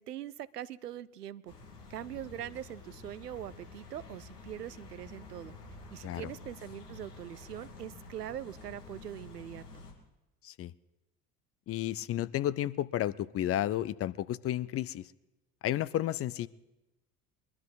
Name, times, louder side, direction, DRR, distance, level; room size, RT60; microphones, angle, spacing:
voice 1, 0.0-1.5 1.9-5.5 5.9-9.8, right 11 dB, 85° right, 18 dB, 0.6 m, -42 dB
sound 1, 1.5-9.9, left 3 dB, 85° left, 2.6 m, -50 dB
voice 2, 11.7-15.0 15.6-16.5, left 12 dB, 30° left, 18 dB, 0.5 m, -32 dB
23.0 x 12.5 x 4.1 m, 0.98 s
figure-of-eight pair, 65°, 46 cm